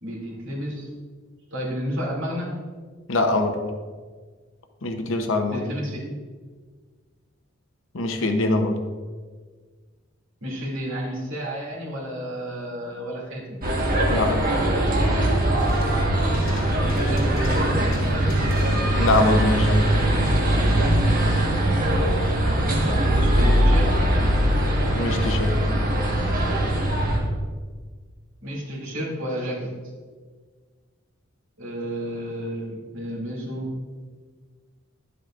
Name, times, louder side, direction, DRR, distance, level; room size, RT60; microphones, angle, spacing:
voice 1, 0.0-0.9 1.5-2.6 5.5-6.0 10.4-13.6 16.7-17.8 18.1-18.3 22.5-24.1 28.4-29.7 31.6-33.7, equal, 70° right, -4 dB, 2.6 m, -31 dB
voice 2, 3.1-3.6 4.8-5.6 7.9-8.8 14.1-14.5 19.0-19.8 24.9-25.7, left 2 dB, 65° left, 5 dB, 0.8 m, -23 dB
sound 1, 13.6-27.2, right 1 dB, 45° right, 1.4 m, -21 dB
sound 2, 15.3-20.4, left 1 dB, 85° left, 1.8 m, -37 dB
11.0 x 8.2 x 2.5 m, 1.5 s
head